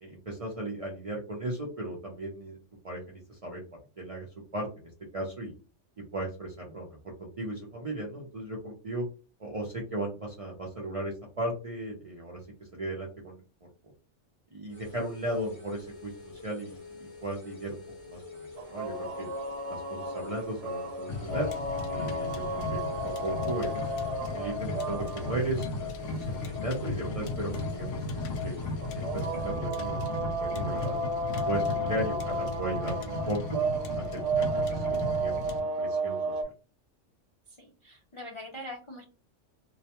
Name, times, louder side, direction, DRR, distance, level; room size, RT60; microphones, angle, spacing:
voice 1, 0.0-2.6 2.8-3.6 4.0-4.3 4.5-5.5 6.1-9.0 9.4-12.4 12.7-13.4 14.5-19.3 19.7-21.5 21.9-22.8 23.2-23.8 24.3-25.9 26.1-28.5 29.0-30.0 30.4-30.9 31.5-33.6 33.9-35.4 35.8-36.2, right 1 dB, 45° right, -2 dB, 0.4 m, -36 dB
sound 1, 14.7-29.6, left 4 dB, 30° left, 0.9 m, -47 dB
sound 2, 18.6-36.4, right 2 dB, 75° right, 0.9 m, -33 dB
sound 3, 21.1-35.6, left 3 dB, 80° left, 0.9 m, -35 dB
voice 2, 37.6-39.0, left 1 dB, 50° left, -1 dB, 0.3 m, -42 dB
2.3 x 2.1 x 2.8 m, 0.34 s
omnidirectional pair, 1.3 m